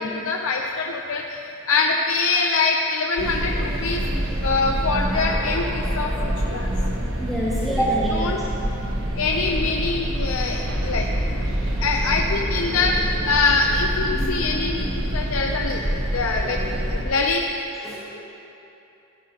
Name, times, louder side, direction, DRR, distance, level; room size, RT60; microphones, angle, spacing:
voice 1, 0.0-1.4 1.7-4.0 4.4-6.1 6.5-6.7 8.1-8.4 9.2-11.1 11.8-16.6 16.9-17.4, left 4 dB, 80° left, 1 dB, 0.6 m, -24 dB
sound 1, 3.2-17.0, equal, 65° right, 1.4 m, -26 dB
voice 2, 7.2-8.7 17.8-18.0, right 1 dB, ahead, -10 dB, 1.4 m, -26 dB
15.0 x 12.0 x 2.9 m, 2.9 s
head